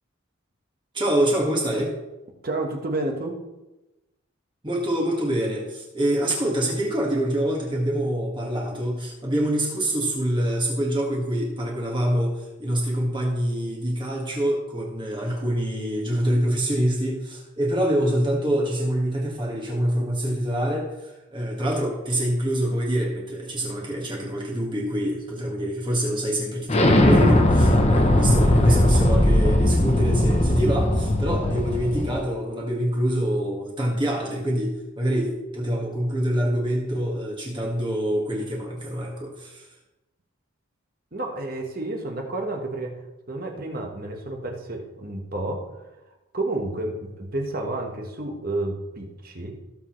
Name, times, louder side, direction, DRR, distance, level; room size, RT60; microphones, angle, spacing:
voice 1, 0.9-1.9 4.6-39.6, right 1 dB, 20° right, -3 dB, 1.8 m, -25 dB
voice 2, 2.4-3.4 28.7-28.9 31.2-31.6 41.1-43.0 43.3-45.6 46.3-49.6, right 2 dB, 45° right, 2 dB, 1.4 m, -30 dB
Explosion, 26.7-32.2, left 1 dB, 30° left, 0.9 m, -19 dB
17.0 x 6.7 x 3.2 m, 1.0 s
head